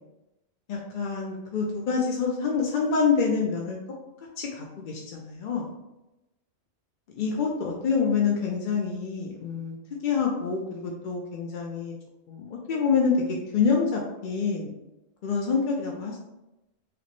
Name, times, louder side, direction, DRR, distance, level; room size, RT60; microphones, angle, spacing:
voice 1, 0.7-3.8 4.4-5.7 7.2-9.8 10.0-11.9 12.3-14.7 15.2-16.2, left 5 dB, 60° left, -1 dB, 0.5 m, -26 dB
5.0 x 2.0 x 3.0 m, 0.96 s
omnidirectional pair, 1.3 m